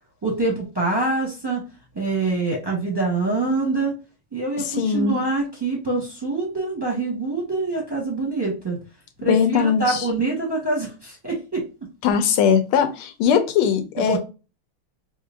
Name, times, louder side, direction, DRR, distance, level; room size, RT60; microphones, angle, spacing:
voice 1, 0.2-1.6 1.9-4.0 4.3-8.8 9.2-11.6 14.1-14.2, right 3 dB, 20° right, -3 dB, 0.7 m, -25 dB
voice 2, 4.6-5.2 9.2-10.1 12.0-14.2, left 7 dB, 85° left, 8 dB, 1.5 m, -20 dB
4.9 x 2.8 x 2.4 m, 0.32 s
omnidirectional pair, 2.4 m